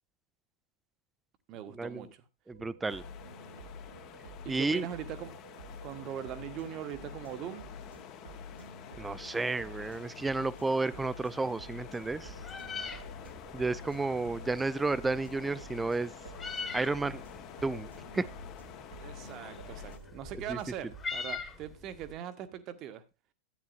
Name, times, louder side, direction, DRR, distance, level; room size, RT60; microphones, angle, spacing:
voice 1, 1.5-2.1 4.4-5.4 5.8-7.7 12.8-13.0 19.0-23.0, right 10 dB, 35° right, 1.1 m, -41 dB
voice 2, 2.5-3.0 4.5-4.8 9.0-12.3 13.5-16.1 16.7-17.2 17.6-17.9 18.1-18.2 20.5-20.6, right 3 dB, 10° right, 0.5 m, -31 dB
sound 1, 2.5-21.0, left 1 dB, 75° right, 1.2 m, -49 dB
sound 2, 2.9-20.0, left 10 dB, 35° left, 1.0 m, -49 dB
Meow, 12.0-22.1, left 4 dB, 20° left, 1.4 m, -44 dB
12.5 x 9.3 x 2.6 m
figure-of-eight pair, 90°, 0 cm